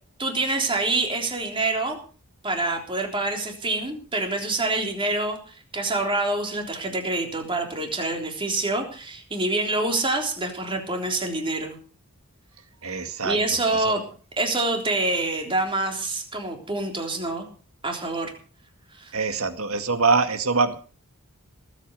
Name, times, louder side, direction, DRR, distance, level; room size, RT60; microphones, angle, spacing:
voice 1, 0.2-2.0 2.4-11.8 13.2-14.0 14.4-17.5 17.8-18.3 18.9-19.1, right 2 dB, 25° right, 3 dB, 3.5 m, -26 dB
voice 2, 12.8-13.4 13.7-14.0 19.1-20.8, right 4 dB, 70° right, 8 dB, 2.0 m, -24 dB
19.0 x 8.6 x 6.7 m, 0.40 s
head